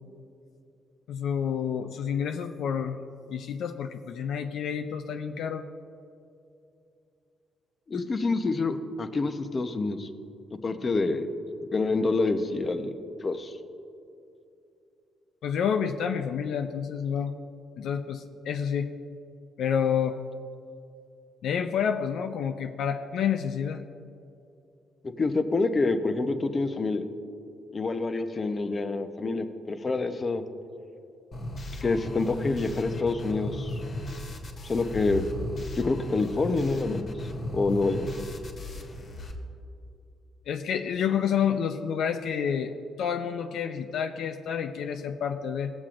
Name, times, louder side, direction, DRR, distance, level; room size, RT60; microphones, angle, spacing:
voice 1, 1.1-3.0 3.3-5.6 15.4-17.3 17.8-18.9 19.6-20.2 21.4-23.8 40.5-42.7 43.0-45.7, left 7 dB, 75° left, 6 dB, 0.4 m, -29 dB
voice 2, 7.9-10.1 10.6-11.3 11.7-12.9 13.2-13.6 25.0-27.0 27.7-30.4 31.8-33.8 34.6-35.2 35.8-37.1 37.5-38.1, left 3 dB, 35° left, 8 dB, 0.7 m, -27 dB
sound 1, 31.3-39.3, left 1 dB, 55° left, 1.4 m, -36 dB
16.5 x 7.3 x 2.5 m, 2.7 s
cardioid pair, 90°, 0 cm